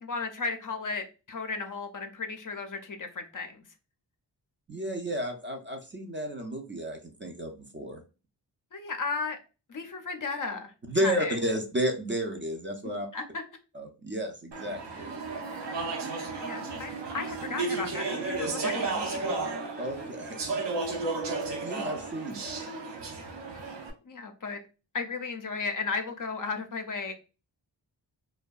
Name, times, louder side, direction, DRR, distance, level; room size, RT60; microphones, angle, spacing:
voice 1, 0.0-3.6 8.7-9.4 9.7-11.4 13.1-13.3 16.4-19.2 24.0-24.6 24.9-27.1, left 4 dB, 50° left, 6 dB, 0.4 m, -34 dB
voice 2, 4.7-8.0 10.9-13.1 13.7-15.1 19.8-20.6 21.6-22.6, equal, 30° right, 3 dB, 0.4 m, -32 dB
Speech / Chatter, 14.5-23.9, right 3 dB, 75° right, 0.6 m, -33 dB
2.6 x 2.2 x 2.3 m, 0.32 s
wide cardioid pair, 105°, 44 cm